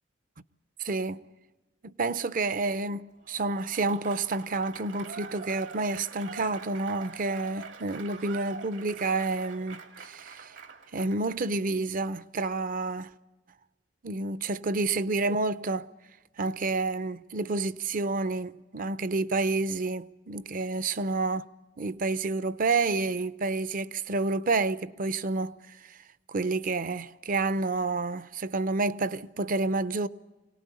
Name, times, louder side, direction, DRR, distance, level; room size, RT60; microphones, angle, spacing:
voice 1, 0.8-1.2 1.8-10.6 10.9-13.1 14.0-15.9 16.4-21.4 21.8-26.0 26.3-30.1, right 3 dB, 45° right, 0.6 m, -29 dB
Applause / Crowd, 3.2-11.4, right 5 dB, 80° right, 2.4 m, -45 dB
24.5 x 18.5 x 8.4 m
head